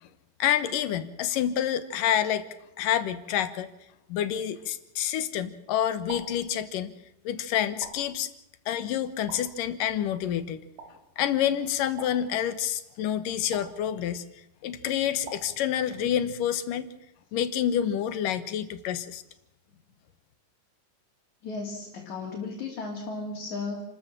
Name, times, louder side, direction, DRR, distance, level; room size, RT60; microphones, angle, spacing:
voice 1, 0.4-2.5 2.8-3.7 4.1-6.9 7.3-8.3 8.7-10.6 11.2-14.2 14.6-16.9 17.3-19.2, left 10 dB, 75° left, 13 dB, 2.6 m, -28 dB
sound 1, 6.1-6.5 7.8-8.2 9.3-9.6 10.8-11.1 12.0-12.4 13.5-13.9 15.3-15.7, right 4 dB, 75° right, 4.8 m, -43 dB
voice 2, 21.4-23.8, left 3 dB, 55° left, 0 dB, 4.0 m, -35 dB
29.5 x 13.5 x 7.5 m, 0.86 s
omnidirectional pair, 4.0 m